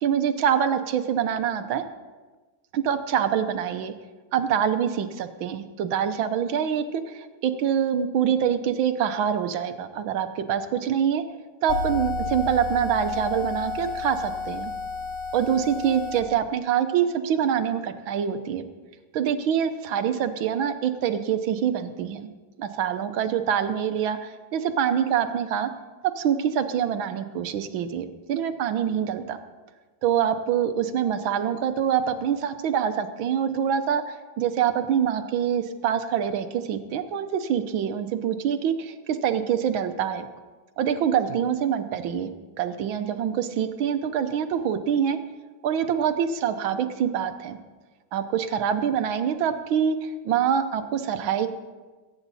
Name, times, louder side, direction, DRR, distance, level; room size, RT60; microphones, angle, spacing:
voice 1, 0.0-1.9 2.7-3.9 4.3-11.2 11.6-14.7 15.3-18.6 19.1-22.3 22.6-25.7 26.2-29.4 30.0-40.3 40.8-42.3 42.6-45.2 45.6-47.6 48.1-51.5, right 8 dB, 75° right, 9 dB, 1.6 m, -25 dB
sound 1, 11.7-16.2, left 4 dB, 65° left, 2.2 m, -30 dB
21.5 x 9.2 x 4.1 m, 1.3 s
omnidirectional pair, 2.3 m